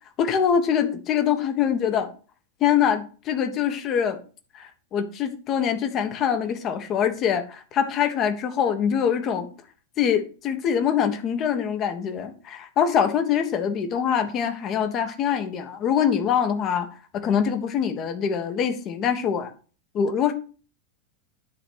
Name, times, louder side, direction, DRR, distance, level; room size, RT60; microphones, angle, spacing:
voice 1, 0.2-2.1 2.6-4.2 4.5-9.5 10.0-16.9 17.1-19.5 19.9-20.3, left 8 dB, 35° left, 8 dB, 1.2 m, -24 dB
9.9 x 4.3 x 6.1 m, 0.38 s
figure-of-eight pair, 90°, 0 cm